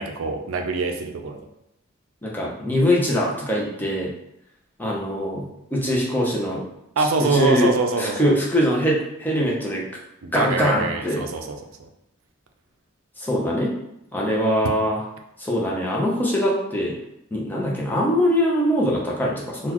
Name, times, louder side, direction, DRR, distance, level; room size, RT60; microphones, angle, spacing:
voice 1, 0.0-1.4 7.0-8.3 10.2-11.6, right 4 dB, 80° right, 5 dB, 0.4 m, -24 dB
voice 2, 2.2-4.1 4.8-6.6 7.0-9.8 10.3-11.3 13.2-13.7 14.1-15.0 15.4-17.0 17.3-19.7, equal, 10° left, -3 dB, 0.6 m, -22 dB
3.9 x 2.3 x 2.9 m, 0.81 s
head